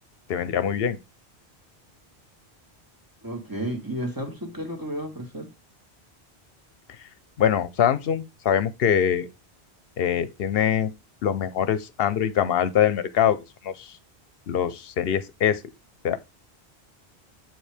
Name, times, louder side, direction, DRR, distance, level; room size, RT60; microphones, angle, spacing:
voice 1, 0.3-1.0 7.4-9.3 10.0-10.9 11.2-13.4 13.6-13.9 14.5-15.6 16.0-16.2, left 9 dB, 65° left, 0.9 m, -23 dB
voice 2, 3.2-5.5, equal, 20° right, 1.6 m, -32 dB
7.7 x 4.6 x 3.4 m
omnidirectional pair, 1.1 m